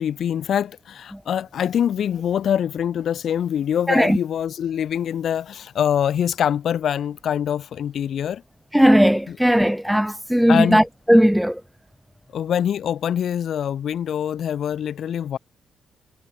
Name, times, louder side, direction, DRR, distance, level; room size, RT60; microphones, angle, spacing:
voice 1, 0.0-8.4 9.3-9.4 10.5-10.8 12.3-15.4, left 9 dB, 65° left, 1.6 m, -24 dB
voice 2, 8.7-11.6, equal, ahead, 0.8 m, -17 dB
cardioid pair, 95°, 0 cm